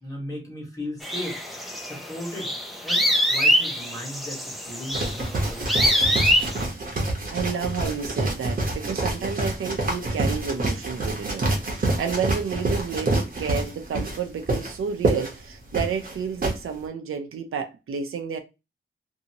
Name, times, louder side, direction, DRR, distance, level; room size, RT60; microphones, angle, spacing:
voice 1, 0.0-1.4 1.8-2.5 2.8-6.5, left 1 dB, 15° left, 1.4 m, -37 dB
sound 1, 1.0-6.6, equal, ahead, 0.5 m, -24 dB
sound 2, 4.9-16.6, right 2 dB, 40° right, 0.9 m, -27 dB
voice 2, 7.3-18.4, right 6 dB, 80° right, 0.5 m, -30 dB
2.7 x 2.7 x 2.8 m
wide cardioid pair, 155°, 21 cm